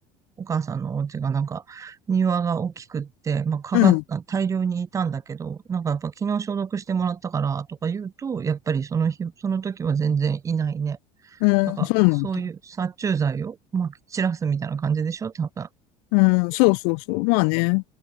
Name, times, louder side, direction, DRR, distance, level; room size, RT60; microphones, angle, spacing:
voice 1, 0.4-11.0 11.2-11.4 11.7-11.9 12.2-15.7, right 6 dB, 20° right, 3.8 m, -26 dB
voice 2, 11.4-12.3 16.1-17.8, left 40 dB or more, 75° left, 0.7 m, -19 dB
cardioid pair, 160°, 14 cm